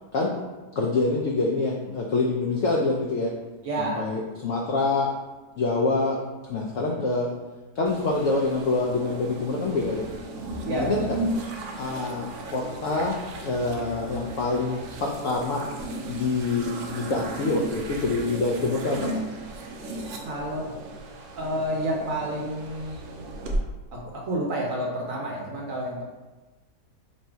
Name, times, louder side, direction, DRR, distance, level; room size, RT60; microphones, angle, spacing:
voice 1, 0.8-3.3 3.8-5.1 5.6-6.2 6.5-7.3 7.7-10.1 10.7-11.2 11.8-15.6 16.1-19.1, left 3 dB, 90° left, -2 dB, 0.6 m, -26 dB
voice 2, 3.6-4.1 10.6-11.1 20.2-20.6 21.4-23.0 23.9-26.0, right 1 dB, 65° right, -3 dB, 0.9 m, -29 dB
sound 1, 7.8-23.6, right 2 dB, 90° right, 0.6 m, -35 dB
3.1 x 2.7 x 4.4 m, 1.2 s
omnidirectional pair, 1.9 m